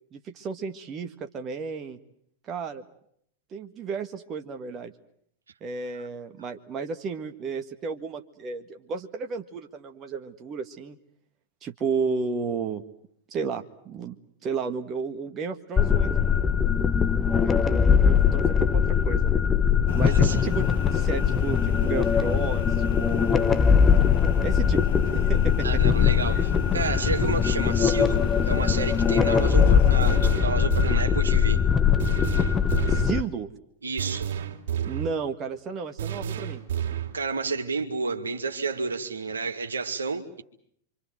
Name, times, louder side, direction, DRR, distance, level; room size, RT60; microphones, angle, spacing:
voice 1, 0.1-2.0 2.4-2.8 3.5-4.9 5.6-11.0 11.6-12.8 13.3-14.2 14.4-16.1 17.3-19.4 19.9-22.7 23.0-23.6 24.4-25.8 26.3-26.5 32.9-33.5 34.8-36.6, right 5 dB, 30° right, 1.9 m, -33 dB
sound 1, 15.8-33.2, left 7 dB, 20° left, 1.1 m, -21 dB
sound 2, 19.9-30.4, left 11 dB, 55° left, 1.2 m, -35 dB
voice 2, 25.6-31.6 33.8-34.3 37.1-40.4, right 4 dB, 75° right, 2.5 m, -31 dB
sound 3, 30.0-31.2 32.0-33.2 34.0-35.2 36.0-37.2, right 9 dB, 60° right, 3.4 m, -31 dB
27.0 x 25.5 x 7.8 m
figure-of-eight pair, 90°, 0 cm